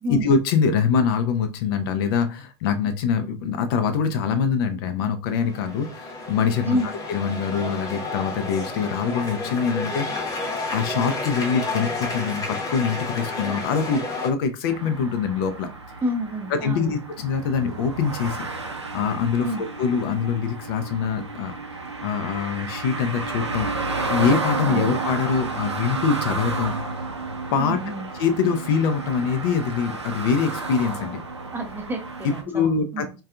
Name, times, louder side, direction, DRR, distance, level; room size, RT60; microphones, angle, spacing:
voice 1, 0.1-6.8 7.1-10.3 10.7-15.7 16.5-18.5 18.9-21.6 22.0-26.7 27.5-27.8 28.2-31.2 32.2-33.2, left 6 dB, 55° left, 0.5 m, -24 dB
sound 1, 5.4-14.3, left 2 dB, 25° left, 0.8 m, -31 dB
voice 2, 6.6-7.0 16.0-16.9 19.4-19.6 24.6-24.9 27.6-28.1 31.5-33.1, equal, 15° right, 0.6 m, -29 dB
sound 2, 14.7-32.4, right 3 dB, 90° right, 0.4 m, -31 dB
2.5 x 2.3 x 2.4 m
figure-of-eight pair, 80°, 14 cm